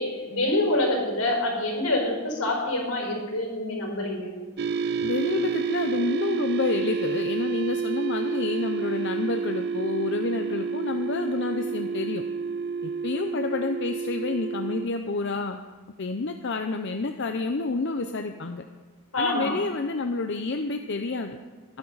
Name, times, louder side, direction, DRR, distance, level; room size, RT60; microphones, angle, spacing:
voice 1, 0.0-4.3 19.1-19.6, left 1 dB, 85° left, 0 dB, 4.7 m, -26 dB
sound 1, 4.6-14.9, right 5 dB, 50° right, 0.4 m, -29 dB
voice 2, 5.0-12.2 12.8-15.6 16.0-18.6 19.2-21.4, left 3 dB, 55° left, 6 dB, 0.6 m, -29 dB
21.0 x 10.5 x 4.1 m, 1.3 s
head